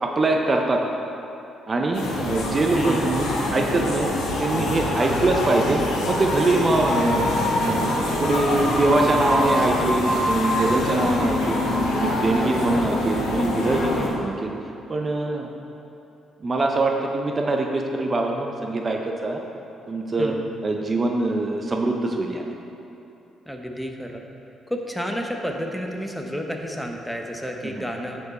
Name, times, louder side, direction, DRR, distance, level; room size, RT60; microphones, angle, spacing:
voice 1, 0.0-0.8 1.7-4.1 4.4-7.3 7.6-7.9 8.2-11.6 11.9-14.5 14.9-15.5 16.4-19.4 19.9-20.4 20.6-22.5 27.6-27.8, right 2 dB, 35° right, 2 dB, 0.6 m, -23 dB
sound 1, 1.9-14.1, left 1 dB, 85° left, 1.2 m, -24 dB
voice 2, 2.7-3.1 5.0-5.2 12.3-12.8 14.0-14.1 20.2-20.4 23.5-24.2 24.7-28.2, equal, 5° left, 2 dB, 0.7 m, -31 dB
9.6 x 4.5 x 4.2 m, 2.9 s
cardioid pair, 90°, 0 cm